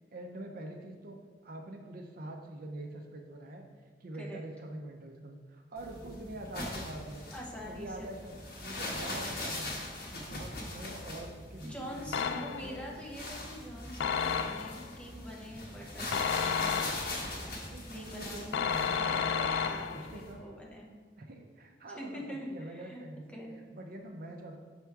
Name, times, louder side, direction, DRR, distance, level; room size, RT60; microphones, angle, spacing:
voice 1, 0.1-1.2 1.4-3.7 4.0-7.3 7.6-8.4 8.6-12.8 17.7-19.5 19.9-20.4 21.2-23.4 23.7-24.6, right 1 dB, 55° right, 3 dB, 0.5 m, -45 dB
sound 1, 5.8-20.3, left 1 dB, 60° left, 1.3 m, -41 dB
voice 2, 7.3-8.1 11.6-16.5 17.8-18.6 19.0-20.9 22.0-23.0 23.3-23.6, equal, 10° left, -2 dB, 0.8 m, -44 dB
sound 2, 12.1-12.8 14.0-14.9 16.1-17.3 18.5-20.2, left 6 dB, 80° left, 0.3 m, -32 dB
5.8 x 3.4 x 4.7 m, 1.5 s
head